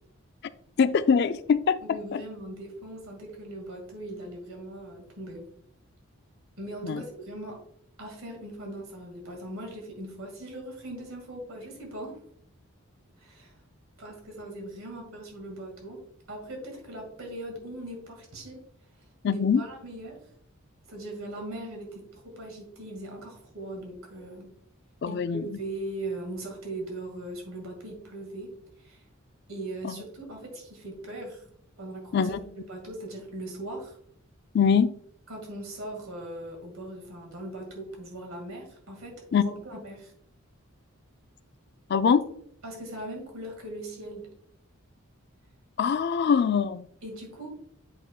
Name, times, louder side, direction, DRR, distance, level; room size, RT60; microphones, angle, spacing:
voice 1, 0.8-2.2 6.8-7.0 19.2-19.6 25.0-25.5 29.8-30.0 32.1-32.4 34.5-34.9 39.3-39.4 41.9-42.3 45.8-46.9, left 6 dB, 50° left, 13 dB, 0.4 m, -23 dB
voice 2, 1.8-5.5 6.6-7.6 8.0-12.2 13.2-13.5 14.0-16.0 16.3-18.6 19.3-20.2 20.9-24.5 25.1-29.0 29.5-31.4 31.8-32.4 32.7-34.0 35.3-40.1 42.6-44.3 47.0-47.5, right 1 dB, 70° right, 1 dB, 2.1 m, -39 dB
8.0 x 5.8 x 2.3 m, 0.65 s
head